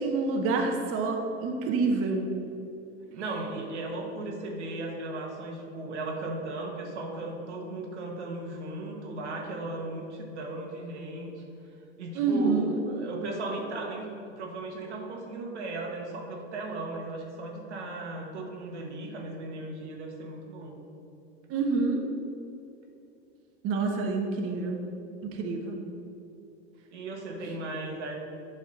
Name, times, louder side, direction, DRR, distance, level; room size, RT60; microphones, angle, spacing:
voice 1, 0.0-2.2 12.1-12.8 21.5-22.0 23.6-24.8 25.2-25.8, right 4 dB, 40° right, 2 dB, 1.0 m, -27 dB
voice 2, 3.1-11.4 12.0-20.8 26.9-28.2, right 2 dB, 85° right, 0 dB, 1.3 m, -36 dB
7.7 x 3.7 x 5.8 m, 2.7 s
hypercardioid pair, 100°, 33 cm